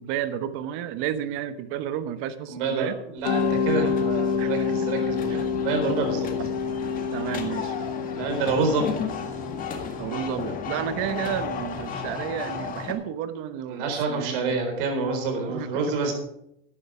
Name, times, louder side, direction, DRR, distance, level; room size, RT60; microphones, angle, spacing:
voice 1, 0.0-2.9 4.4-4.5 5.3-5.4 7.1-7.7 10.0-14.6 15.5-15.7, right 10 dB, 45° right, 12 dB, 1.0 m, -31 dB
voice 2, 2.5-6.3 8.2-9.0 13.7-16.1, right 4 dB, 60° right, 4 dB, 4.1 m, -27 dB
Mallet percussion, 3.2-12.0, left 6 dB, 65° left, 1.5 m, -29 dB
sound 1, 3.3-12.9, left 6 dB, 30° left, 1.9 m, -34 dB
12.0 x 10.0 x 5.0 m, 0.78 s
supercardioid pair, 140°, 30 cm